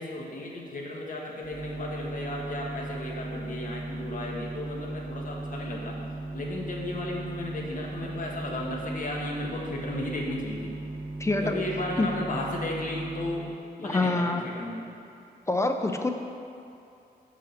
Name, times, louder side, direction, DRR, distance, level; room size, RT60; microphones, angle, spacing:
voice 1, 0.0-6.0 6.3-10.7 11.4-13.5 13.8-15.0, left 1 dB, 50° left, -2 dB, 1.1 m, -34 dB
sound 1, 1.4-13.3, right 2 dB, 5° right, 1.0 m, -37 dB
voice 2, 11.2-11.6 12.0-12.1 13.8-14.4 15.5-16.1, left 2 dB, 15° left, 5 dB, 0.4 m, -26 dB
6.3 x 5.6 x 6.3 m, 2.7 s
wide cardioid pair, 175°, 17 cm